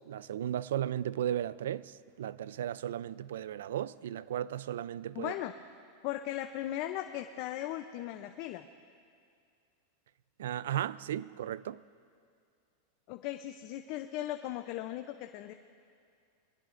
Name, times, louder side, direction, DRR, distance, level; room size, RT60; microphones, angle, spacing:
voice 1, 0.1-5.3 10.4-11.8, right 11 dB, 90° right, 0.4 m, -35 dB
voice 2, 5.1-5.6 6.0-8.6 13.1-15.5, left 13 dB, 50° left, 0.6 m, -37 dB
22.5 x 19.0 x 2.6 m
supercardioid pair, 145°, 0 cm